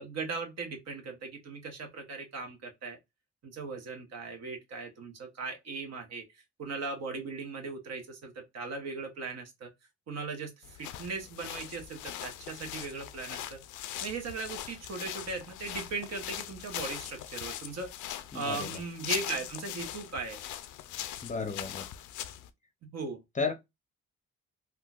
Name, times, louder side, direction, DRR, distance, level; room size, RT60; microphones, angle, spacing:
voice 1, 0.0-3.0 3.4-6.2 6.6-9.7 10.1-13.6 14.0-17.9 18.3-20.4 22.8-23.2, right 4 dB, 60° right, 1.0 m, -38 dB
sound 1, 10.6-22.5, left 12 dB, 80° left, 0.5 m, -41 dB
voice 2, 18.3-18.7 21.2-21.9 23.4-23.5, left 4 dB, 25° left, 0.6 m, -33 dB
3.7 x 2.3 x 2.3 m
cardioid pair, 90°, 30 cm